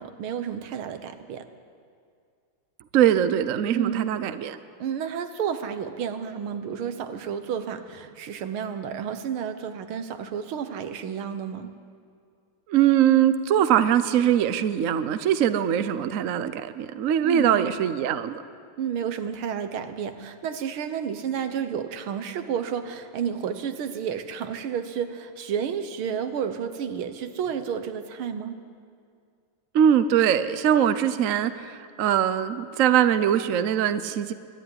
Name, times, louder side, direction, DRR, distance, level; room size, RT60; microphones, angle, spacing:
voice 1, 0.0-1.5 3.7-4.1 4.8-11.7 17.2-17.7 18.8-28.6, right 8 dB, 80° right, 9 dB, 1.9 m, -31 dB
voice 2, 2.9-4.6 12.7-18.4 29.7-34.3, right 10 dB, 60° right, 12 dB, 0.8 m, -22 dB
24.0 x 11.0 x 9.7 m, 2.2 s
omnidirectional pair, 2.3 m